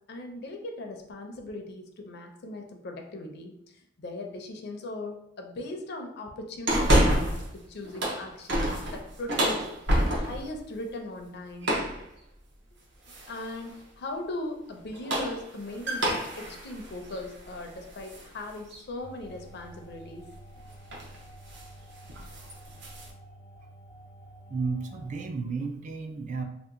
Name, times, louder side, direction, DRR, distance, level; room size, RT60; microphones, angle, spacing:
voice 1, 0.1-3.5 4.0-9.7 10.1-11.7 13.1-20.3, left 2 dB, 60° left, 4 dB, 0.5 m, -39 dB
sound 1, 6.7-7.5 7.8-10.5 11.6-12.0 13.1-13.5 14.8-18.3 18.7-18.8 20.3-20.6 20.9-21.2 21.5-21.7 22.0-23.1, equal, 65° right, 0.7 m, -28 dB
sound 2, 19.0-25.3, right 1 dB, 85° left, 0.9 m, -50 dB
voice 2, 24.5-26.4, right 4 dB, 40° right, 5 dB, 0.3 m, -32 dB
2.8 x 2.1 x 3.6 m, 0.79 s
head